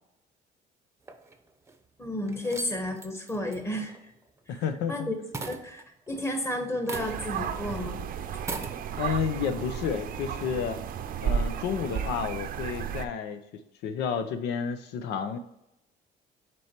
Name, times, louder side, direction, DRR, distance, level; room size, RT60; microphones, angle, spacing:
sound 1, 1.1-1.7 2.2-5.0 5.3-6.4 6.8-7.4 7.7-7.8 8.4-8.8, right 3 dB, 15° right, 0.7 m, -39 dB
voice 1, 2.0-4.1 4.5-4.6 4.9-5.1 5.4-8.0, left 1 dB, 15° left, 5 dB, 1.3 m, -32 dB
voice 2, 4.5-5.1 9.0-10.8 11.2-13.4 13.8-15.4, left 7 dB, 80° left, 9 dB, 0.8 m, -31 dB
sound 2, 6.9-13.1, right 7 dB, 60° right, 0.6 m, -33 dB
6.2 x 4.7 x 4.5 m, 0.83 s
cardioid pair, 110°, 17 cm